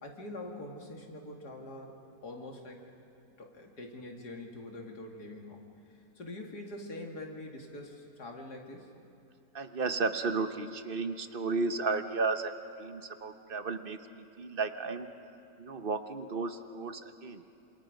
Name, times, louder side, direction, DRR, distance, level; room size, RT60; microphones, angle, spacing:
voice 1, 0.0-1.9 2.2-2.9 3.4-5.6 6.2-8.9, left 1 dB, 90° left, 1 dB, 3.0 m, -44 dB
voice 2, 9.5-12.5 12.8-15.1 15.6-17.4, right 4 dB, 40° right, 9 dB, 1.0 m, -33 dB
28.5 x 26.5 x 5.2 m, 2.8 s
omnidirectional pair, 1.7 m